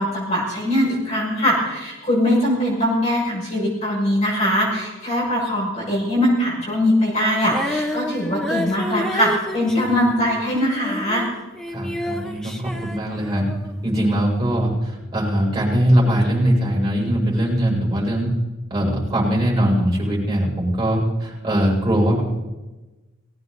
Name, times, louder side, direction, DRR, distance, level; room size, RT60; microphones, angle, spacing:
voice 1, 0.0-11.3, equal, 30° left, -5 dB, 6.4 m, -21 dB
Female singing, 7.4-13.8 14.5-14.6, left 1 dB, 5° left, 1.1 m, -29 dB
voice 2, 11.7-13.5 13.8-18.3 18.7-22.2, equal, 20° right, -4 dB, 7.3 m, -21 dB
20.0 x 17.5 x 4.2 m, 1.1 s
head